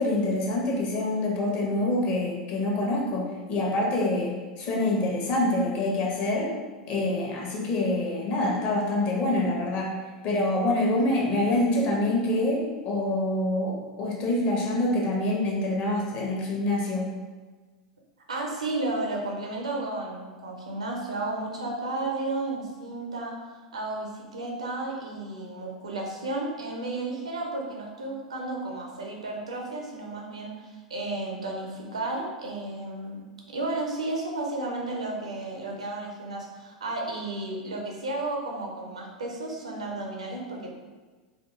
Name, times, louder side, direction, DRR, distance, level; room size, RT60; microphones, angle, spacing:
voice 1, 0.0-3.2 3.5-6.5 6.9-9.9 10.2-17.0, left 1 dB, 45° left, -2 dB, 1.0 m, -26 dB
voice 2, 18.3-33.2 33.5-40.7, right 2 dB, 85° right, 0 dB, 0.7 m, -33 dB
3.4 x 2.5 x 2.9 m, 1.3 s
figure-of-eight pair, 85°, 3 cm